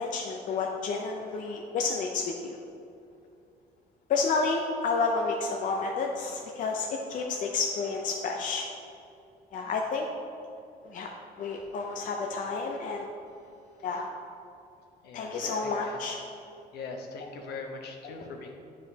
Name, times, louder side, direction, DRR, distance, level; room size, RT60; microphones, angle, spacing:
voice 1, 0.0-2.6 4.1-8.7 9.5-10.1 10.8-11.1 11.4-13.1 13.8-14.1 15.1-16.3 18.0-18.2, left 4 dB, 50° left, 1 dB, 0.6 m, -30 dB
voice 2, 15.0-16.0 16.7-18.5, left 3 dB, 75° left, 2 dB, 1.0 m, -41 dB
9.1 x 5.1 x 2.8 m, 2.6 s
cardioid pair, 110°, 17 cm